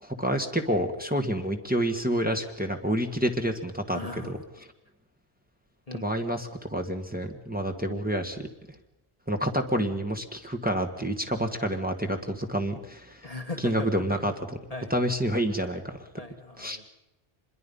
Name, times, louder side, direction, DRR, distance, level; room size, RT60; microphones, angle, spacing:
voice 1, 0.0-4.4 5.9-8.4 9.3-13.2 13.6-14.6 14.9-16.0 16.6-16.8, equal, 10° right, 3 dB, 1.7 m, -28 dB
voice 2, 3.9-4.3 5.9-6.1 13.2-14.3 14.7-14.9 16.2-16.8, left 3 dB, 35° left, 5 dB, 1.3 m, -38 dB
25.5 x 22.0 x 5.5 m, 0.94 s
omnidirectional pair, 1.1 m